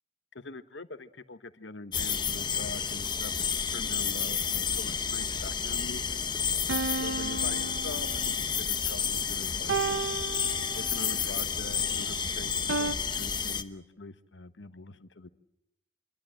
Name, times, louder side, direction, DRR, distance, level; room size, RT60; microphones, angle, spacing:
voice 1, 0.3-6.2 7.0-10.0 10.7-15.3, left 2 dB, 75° left, 11 dB, 1.2 m, -44 dB
sound 1, 1.9-13.6, left 7 dB, 25° left, 1.0 m, -30 dB
sound 2, 6.7-8.5 9.7-11.1 12.7-12.9, right 4 dB, 85° right, 1.0 m, -33 dB
27.0 x 23.0 x 7.8 m, 0.86 s
head